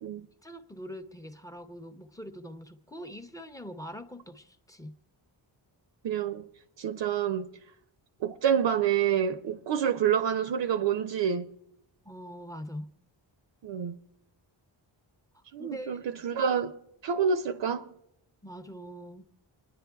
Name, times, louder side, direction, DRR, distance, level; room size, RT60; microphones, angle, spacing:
voice 1, 0.4-4.9 12.1-12.9 15.6-16.0 18.4-19.2, equal, 10° left, 0.5 m, -43 dB
voice 2, 6.0-6.5 6.8-7.5 8.2-11.5 13.6-14.0 15.5-16.8 17.0-17.9, right 8 dB, 65° right, 0.5 m, -28 dB
28.5 x 10.5 x 2.3 m
wide cardioid pair, 155°, 47 cm